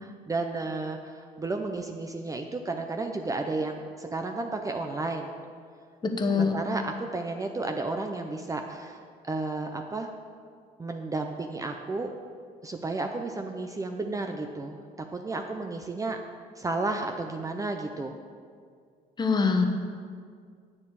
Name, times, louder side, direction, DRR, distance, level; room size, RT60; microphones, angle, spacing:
voice 1, 0.0-5.3 6.3-10.1 10.8-12.1 12.6-14.8 15.1-16.2 16.6-18.1, right 3 dB, 20° right, 4 dB, 0.6 m, -32 dB
voice 2, 6.0-6.5 19.2-19.6, left 4 dB, 25° left, 4 dB, 1.1 m, -24 dB
9.7 x 9.4 x 4.8 m, 2.1 s
cardioid pair, 110°, 17 cm